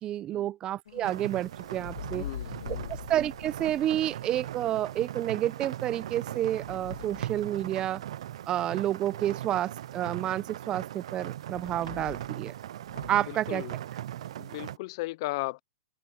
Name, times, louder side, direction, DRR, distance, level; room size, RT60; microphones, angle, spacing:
voice 1, 0.0-2.3 3.1-8.0 8.5-12.5 13.1-13.6, right 12 dB, 25° right, 0.9 m, -30 dB
sound 1, 0.9-5.0 5.9-8.2 11.5-12.4 12.8-13.3, left 9 dB, 85° left, 2.1 m, -44 dB
sound 2, 1.0-14.8, right 12 dB, 70° right, 0.5 m, -39 dB
voice 2, 2.1-2.9 12.0-12.1 13.3-13.8 14.4-15.6, left 21 dB, 45° left, 0.5 m, -36 dB
open air
hypercardioid pair, 145°, 3 cm